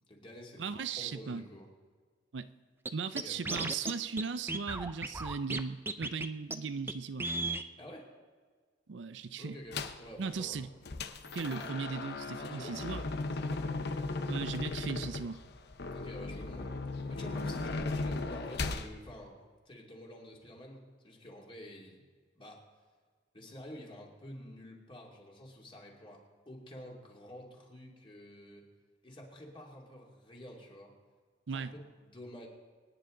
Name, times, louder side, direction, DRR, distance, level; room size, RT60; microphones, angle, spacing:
voice 1, 0.1-1.7 3.1-3.4 7.8-8.1 9.4-10.7 11.4-11.7 12.2-14.1 15.9-22.0 22.3-22.6 23.3-28.6 29.0-30.9 31.5-32.5, left 1 dB, 30° left, 2.7 m, -49 dB
voice 2, 0.6-1.4 2.3-2.5 2.9-7.3 8.9-9.6 10.2-10.7 11.3-13.0 14.3-15.4 31.5-31.7, right 5 dB, 75° right, 0.5 m, -37 dB
Scratching (performance technique), 2.9-3.0 3.2-3.9 4.2-4.3 4.5-5.6 5.9-6.3 6.5-6.6 6.9-7.0 7.2-7.7, right 2 dB, 15° right, 0.5 m, -34 dB
sound 1, 9.7-10.1 10.5-18.9, left 3 dB, 60° left, 0.8 m, -37 dB
24.5 x 9.9 x 3.9 m
head